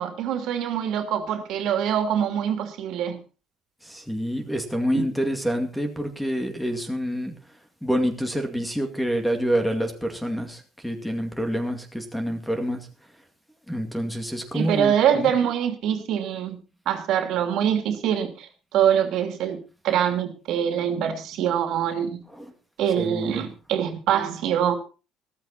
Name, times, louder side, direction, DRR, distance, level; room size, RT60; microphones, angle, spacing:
voice 1, 0.0-3.2 4.9-5.0 14.5-16.6 16.9-18.5 18.7-19.6 19.8-22.2 22.8-24.8, right 9 dB, 60° right, 2.9 m, -24 dB
voice 2, 3.9-7.3 7.8-12.8 13.7-15.3 22.4-22.5 23.0-23.4, equal, ahead, 2.3 m, -27 dB
14.5 x 14.0 x 4.3 m
cardioid pair, 155°, 0 cm